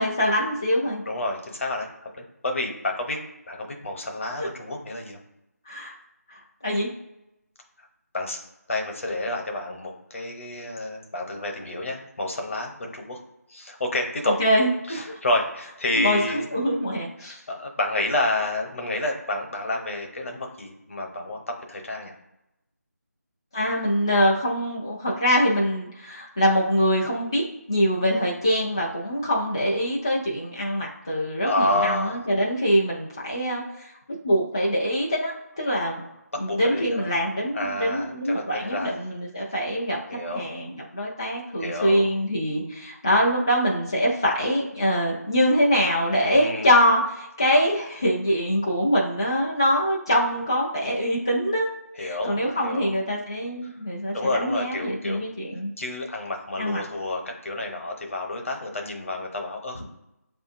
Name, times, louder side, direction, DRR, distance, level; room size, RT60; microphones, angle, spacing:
voice 1, 0.0-1.0 4.4-4.5 5.7-5.9 6.3-6.9 14.2-15.2 16.0-17.4 23.5-27.4 27.7-33.9 34.2-36.0 36.4-40.0 40.3-51.7 52.0-55.7 56.6-56.8, equal, 15° left, -5 dB, 0.3 m, -24 dB
voice 2, 1.1-1.9 2.2-3.2 3.5-5.2 8.1-8.4 8.7-13.2 13.5-14.4 14.9-16.5 16.9-22.1 31.4-32.3 36.5-37.1 37.5-39.0 40.1-40.5 41.6-42.1 46.3-46.7 52.0-52.9 54.1-55.2 55.8-59.8, left 2 dB, 50° left, 2 dB, 1.0 m, -29 dB
6.9 x 2.5 x 2.5 m, 0.90 s
figure-of-eight pair, 170°, 9 cm